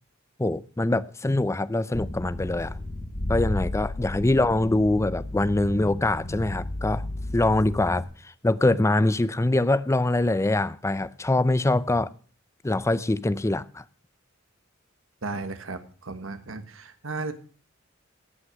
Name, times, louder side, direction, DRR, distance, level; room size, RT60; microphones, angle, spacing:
voice 1, 0.4-2.8 3.3-7.0 7.3-8.1 8.4-12.1 12.6-13.8, left 2 dB, 15° left, 0.5 m, -23 dB
sound 1, 1.9-8.0, left 2 dB, 80° left, 5.8 m, -33 dB
voice 2, 15.2-17.3, right 3 dB, 75° right, 1.5 m, -35 dB
17.5 x 6.2 x 6.2 m
head